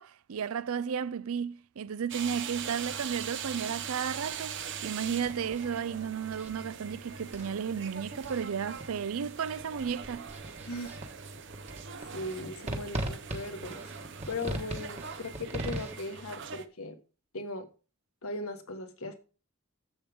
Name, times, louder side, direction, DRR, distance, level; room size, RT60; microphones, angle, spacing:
voice 1, 0.0-10.3, right 7 dB, 85° right, 0.5 m, -33 dB
sound 1, 2.1-16.6, right 7 dB, 60° right, 0.8 m, -42 dB
sound 2, 2.5-15.9, right 1 dB, 30° right, 1.4 m, -42 dB
voice 2, 10.7-11.0 12.1-13.9 14.3-17.0 17.3-17.7 18.2-19.1, left 2 dB, 90° left, 1.6 m, -38 dB
11.0 x 7.6 x 3.6 m
head